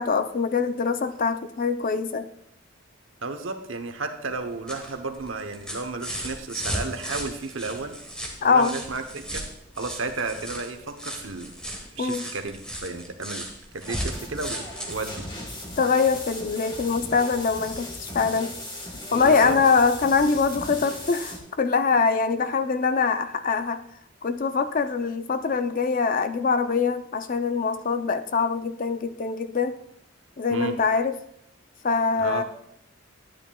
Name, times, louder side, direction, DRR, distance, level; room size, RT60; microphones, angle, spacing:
voice 1, 0.0-2.3 8.4-8.8 12.0-12.2 15.8-18.5 19.1-23.8 24.2-29.8 30.4-31.1 31.8-32.4, left 5 dB, 45° left, 10 dB, 0.5 m, -23 dB
voice 2, 3.2-8.0 8.4-9.4 9.8-11.5 11.9-13.5 13.7-15.2 19.1-19.6 30.5-30.8 32.2-32.4, right 3 dB, 85° right, 6 dB, 0.9 m, -33 dB
sound 1, 4.4-16.3 17.7-17.8, equal, 5° left, 1.3 m, -37 dB
sound 2, 13.9-21.4, left 1 dB, 25° left, 1.7 m, -38 dB
10.5 x 9.8 x 2.3 m, 0.75 s
head